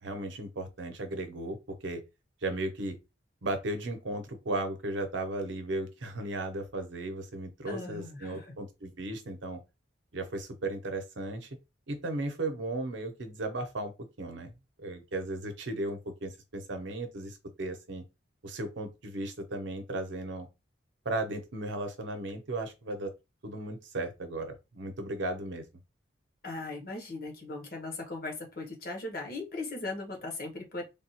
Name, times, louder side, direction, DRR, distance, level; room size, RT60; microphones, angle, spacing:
voice 1, 0.0-2.0 2.4-3.0 3.4-9.6 10.1-11.5 11.9-13.9 14.2-14.5 14.8-18.0 18.4-20.5 21.0-23.1 23.4-25.6, right 2 dB, 70° right, 0.7 m, -35 dB
voice 2, 7.7-8.5 26.4-30.8, left 2 dB, 50° left, 1.0 m, -38 dB
3.4 x 2.3 x 2.8 m
head